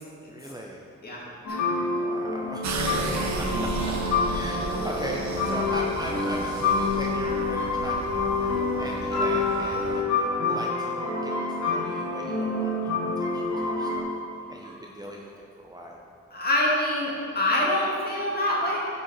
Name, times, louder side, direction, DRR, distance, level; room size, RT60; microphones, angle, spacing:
voice 1, 0.3-0.8 1.9-3.7 4.0-11.3 11.6-14.1 14.5-16.0, equal, 15° right, -1 dB, 0.6 m, -39 dB
voice 2, 1.0-1.6 1.9-2.1 14.6-14.7 16.3-18.8, left 1 dB, 30° left, -5 dB, 2.2 m, -26 dB
sound 1, 1.4-14.0, left 3 dB, 65° left, 2.3 m, -27 dB
sound 2, 2.6-10.0, right 3 dB, 65° right, 1.0 m, -33 dB
10.0 x 5.5 x 5.7 m, 2.5 s
wide cardioid pair, 135°, 30 cm